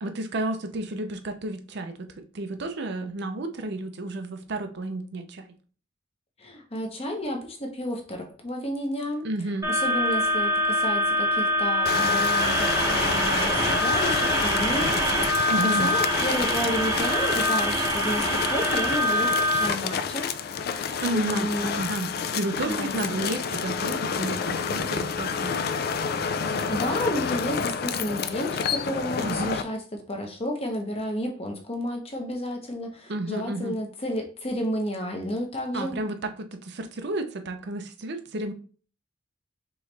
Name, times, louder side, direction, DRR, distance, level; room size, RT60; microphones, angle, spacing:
voice 1, 0.0-5.5 9.2-9.7 15.5-15.9 21.0-22.1 22.4-25.6 29.2-29.6 33.1-33.8 35.7-38.5, right 2 dB, 55° right, 0.6 m, -31 dB
voice 2, 6.4-9.2 9.7-15.5 15.8-20.3 20.8-21.7 22.6-23.3 26.4-29.8 30.1-36.0, equal, 30° left, 0.9 m, -31 dB
sound 1, 9.6-19.7, equal, 15° right, 0.8 m, -24 dB
sound 2, 11.9-29.6, left 6 dB, 50° left, 0.3 m, -29 dB
4.5 x 3.1 x 3.3 m
head